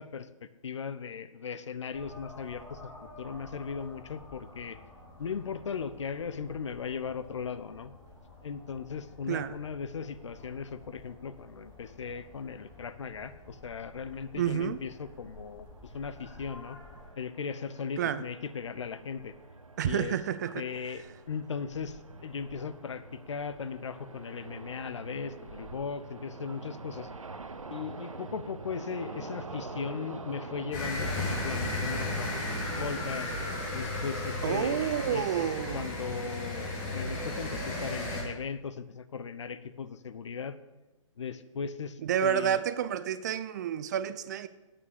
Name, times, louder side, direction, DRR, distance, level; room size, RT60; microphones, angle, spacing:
voice 1, 0.0-2.9 3.2-4.8 5.2-7.9 8.4-16.8 17.2-19.3 19.8-20.2 20.5-27.1 27.7-33.3 33.7-40.6 41.2-42.6, left 6 dB, 60° left, 14 dB, 0.7 m, -38 dB
sound 1, 1.9-17.1, left 2 dB, 15° left, 3.7 m, -51 dB
sound 2, 14.1-33.1, right 3 dB, 75° right, 0.8 m, -45 dB
voice 2, 14.4-14.8 18.0-18.2 19.8-20.6 34.4-35.9 42.0-44.5, right 9 dB, 35° right, 14 dB, 0.4 m, -29 dB
sound 3, 30.7-38.2, left 2 dB, 35° left, 2.7 m, -34 dB
9.0 x 6.9 x 6.7 m, 1.0 s
figure-of-eight pair, 125°, 17 cm